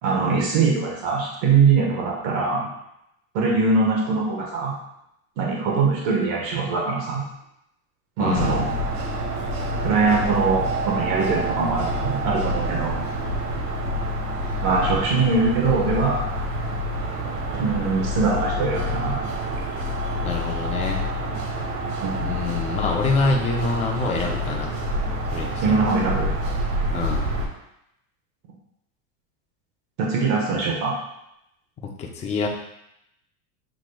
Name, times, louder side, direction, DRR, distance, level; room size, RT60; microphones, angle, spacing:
voice 1, 0.0-2.7 3.3-4.7 5.4-7.2 8.2-8.6 9.8-13.0 14.6-16.3 17.5-19.2 22.0-22.3 25.6-26.3 30.0-30.9, right 4 dB, 60° right, -2 dB, 1.4 m, -22 dB
voice 2, 8.2-8.6 20.2-21.0 22.2-24.7 25.3-25.8 26.9-27.3 31.8-32.5, left 3 dB, 15° left, 0 dB, 0.4 m, -26 dB
sound 1, 8.3-27.5, equal, 80° right, 1.3 m, -27 dB
7.5 x 3.1 x 2.3 m, 0.81 s
supercardioid pair, 140°, 46 cm